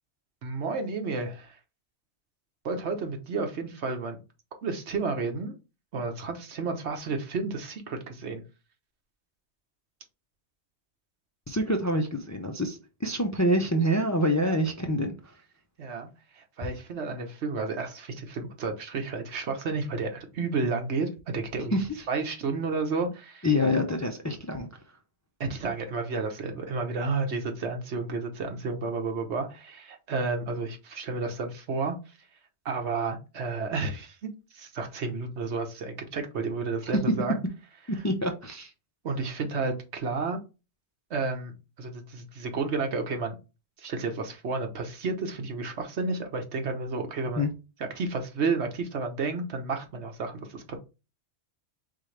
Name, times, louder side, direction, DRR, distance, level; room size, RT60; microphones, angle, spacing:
voice 1, 0.4-1.6 2.6-4.2 4.6-5.5 5.9-8.4 14.4-14.5 15.8-16.1 16.3-21.8 22.1-23.5 25.4-32.0 32.6-37.4 39.0-40.4 41.1-43.4 43.8-47.4 47.9-50.8, right 4 dB, 75° right, 1.3 m, -31 dB
voice 2, 11.5-15.4 21.7-22.1 23.4-25.0 36.8-36.9 37.9-38.7 47.4-47.5, equal, 25° left, 0.4 m, -27 dB
4.4 x 3.6 x 3.2 m
omnidirectional pair, 1.1 m